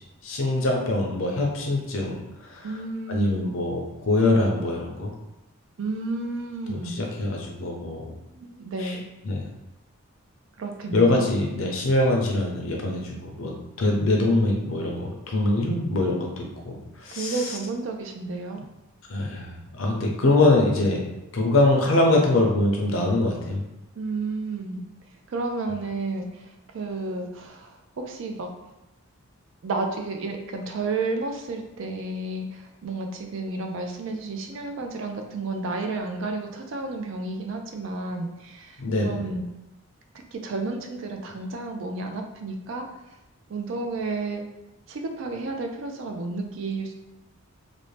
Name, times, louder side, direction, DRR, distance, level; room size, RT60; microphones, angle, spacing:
voice 1, 0.2-2.2 2.5-2.7 3.1-5.1 6.7-8.1 8.8-8.9 9.3-9.5 10.9-17.4 19.1-23.6 38.8-39.2, left 2 dB, 65° left, 0 dB, 0.6 m, -23 dB
voice 2, 2.6-3.5 5.8-7.0 8.2-9.0 10.6-11.3 17.1-18.7 24.0-24.8 25.3-28.7 29.6-39.4 40.3-43.2 43.5-44.4 44.9-47.0, right 3 dB, 55° right, 4 dB, 0.3 m, -31 dB
2.6 x 2.0 x 3.1 m, 0.92 s
head